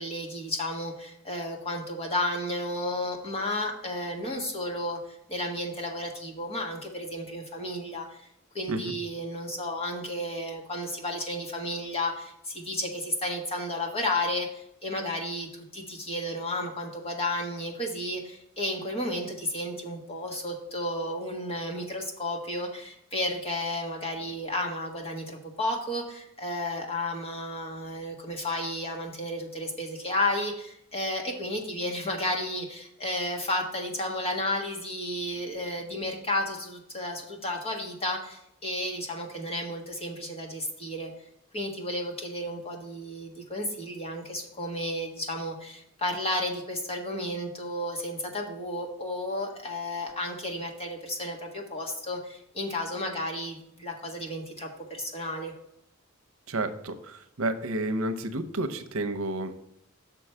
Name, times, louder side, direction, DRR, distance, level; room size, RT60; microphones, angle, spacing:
voice 1, 0.0-5.0 5.3-8.2 8.5-41.1 41.5-55.5, left 1 dB, 30° left, 2 dB, 1.5 m, -32 dB
voice 2, 56.5-59.7, right 2 dB, 90° right, 8 dB, 0.8 m, -31 dB
6.3 x 4.6 x 6.7 m, 0.75 s
head